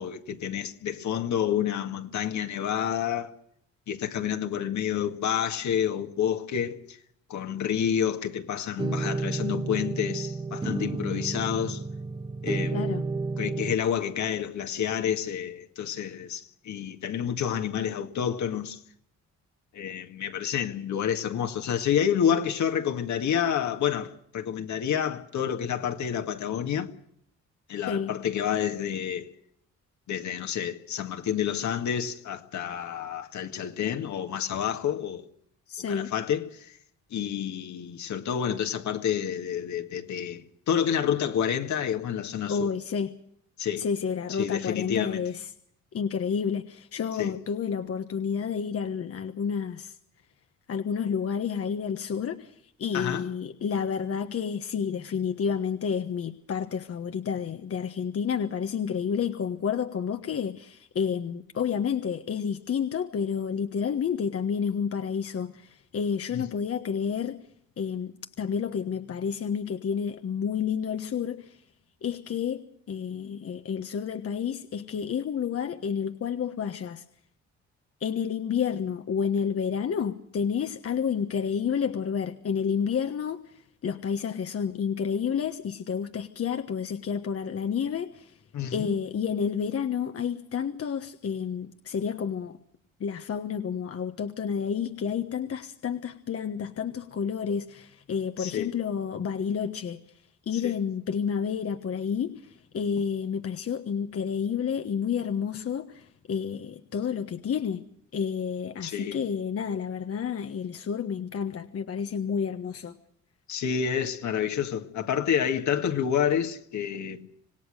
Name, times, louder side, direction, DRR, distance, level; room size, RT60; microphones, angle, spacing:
voice 1, 0.0-3.3 3.9-7.0 7.3-11.8 12.4-12.8 13.4-18.8 19.7-26.9 27.7-29.3 30.1-35.2 35.9-36.7 37.1-42.7 43.6-43.9 44.3-45.2 47.2-47.3 52.9-53.3 66.3-66.4 88.5-88.9 98.4-98.7 100.6-100.7 108.8-109.2 113.5-117.2, left 9 dB, 70° left, 2.1 m, -29 dB
sound 1, 8.8-13.8, right 3 dB, 15° right, 0.8 m, -31 dB
voice 2, 12.7-13.0 27.9-28.1 35.7-36.1 42.5-43.1 43.8-45.5 45.9-50.0 50.7-67.4 67.8-71.6 72.0-77.0 78.0-88.4 88.7-92.6 93.0-100.0 100.5-107.9 108.1-113.0, left 7 dB, 50° left, 1.3 m, -30 dB
26.5 x 18.5 x 6.5 m
cardioid pair, 90°, 30 cm